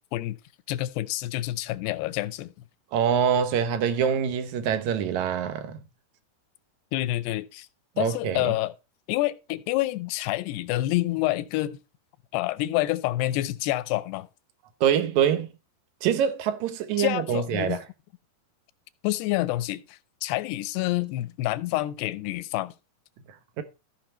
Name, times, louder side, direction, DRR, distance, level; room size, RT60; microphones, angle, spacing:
voice 1, 0.7-2.5 6.9-7.7 8.0-8.7 9.1-11.8 12.3-14.3 17.0-17.8 19.0-22.7, left 17 dB, 85° left, 2.7 m, -28 dB
voice 2, 2.9-5.8 8.0-8.5 14.8-15.5 16.0-17.8 23.6-23.7, right 8 dB, 70° right, 1.8 m, -25 dB
14.5 x 5.7 x 4.4 m
omnidirectional pair, 4.7 m